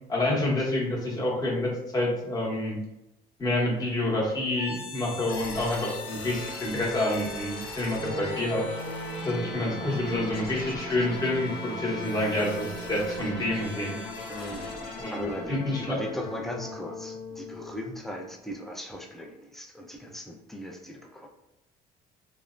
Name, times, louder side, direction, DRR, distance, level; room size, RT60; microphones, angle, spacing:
voice 1, 0.1-2.8 3.4-8.6 9.2-14.0 15.0-15.2 15.5-16.0, left 1 dB, 20° left, -3 dB, 0.9 m, -28 dB
sound 1, 4.6-18.4, left 2 dB, 80° left, 0.7 m, -39 dB
sound 2, 8.0-14.0, right 3 dB, 70° right, 0.7 m, -40 dB
voice 2, 9.2-10.3 11.9-12.0 14.3-21.3, left 1 dB, ahead, 1 dB, 0.4 m, -38 dB
3.1 x 2.0 x 2.4 m, 0.91 s
cardioid pair, 110°, 17 cm